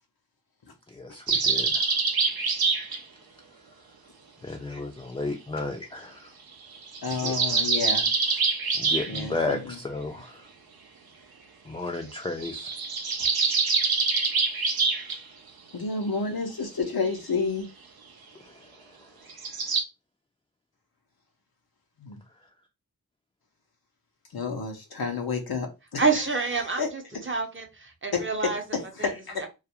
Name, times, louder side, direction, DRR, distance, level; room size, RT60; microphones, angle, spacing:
voice 1, 0.9-1.8 4.4-6.3 7.2-7.3 8.8-10.5 11.7-12.7 18.4-18.7, left 3 dB, 15° left, 0.3 m, -33 dB
sound 1, 1.3-3.0 6.7-9.2 12.4-15.2 19.3-19.8, right 4 dB, 90° right, 0.5 m, -25 dB
voice 2, 7.0-8.4 9.1-9.8 15.7-17.7 22.0-22.2 24.3-26.0 26.6-26.9 28.1-29.4, left 4 dB, 85° left, 0.6 m, -30 dB
voice 3, 26.0-27.0 27.3-28.6 29.0-29.1 29.4-29.5, right 4 dB, 35° right, 0.6 m, -27 dB
2.3 x 2.0 x 2.7 m
wide cardioid pair, 45°, 36 cm